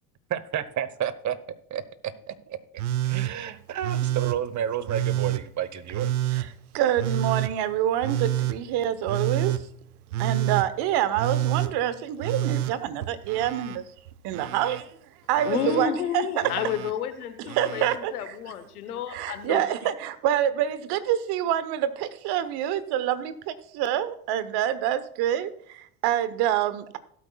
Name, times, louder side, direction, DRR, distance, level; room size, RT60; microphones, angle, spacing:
voice 1, 0.3-1.8 2.3-2.6 3.0-6.1, right 9 dB, 40° right, 16 dB, 1.0 m, -31 dB
Telephone, 2.8-3.3 3.8-4.4 4.9-5.4 5.9-6.5 7.0-7.5 8.0-8.6 9.1-9.6 10.1-10.7 11.2-11.7 12.2-13.8 14.1-14.8 15.4-15.9 16.4-16.9 17.5-18.0 19.2-19.3, right 13 dB, 85° right, 0.7 m, -28 dB
voice 2, 6.7-9.6 10.2-13.8 14.2-14.9 15.3-16.4 17.4-18.4 19.1-27.0, right 11 dB, 60° right, 14 dB, 1.0 m, -27 dB
voice 3, 15.4-17.8 18.1-19.6, left 8 dB, 90° left, 10 dB, 1.1 m, -30 dB
17.0 x 8.4 x 2.3 m, 0.64 s
hypercardioid pair, 70°, 43 cm